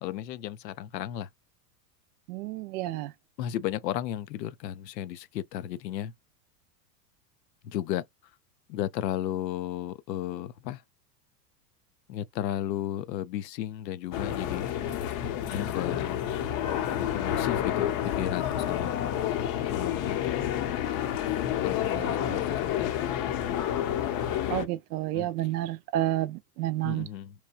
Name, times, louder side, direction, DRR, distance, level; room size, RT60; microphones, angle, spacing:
voice 1, 0.0-1.3 3.4-6.1 7.6-8.0 8.7-10.8 12.1-14.7 15.5-16.2 16.9-19.0 19.7-21.0 21.6-23.2 25.1-25.3 26.8-27.3, left 12 dB, 85° left, 0.6 m, -34 dB
voice 2, 2.3-3.1 21.9-22.4 24.5-27.1, right 14 dB, 65° right, 0.6 m, -30 dB
sound 1, 14.1-24.7, left 11 dB, 40° left, 0.7 m, -29 dB
2.9 x 2.2 x 2.3 m
hypercardioid pair, 100°, 49 cm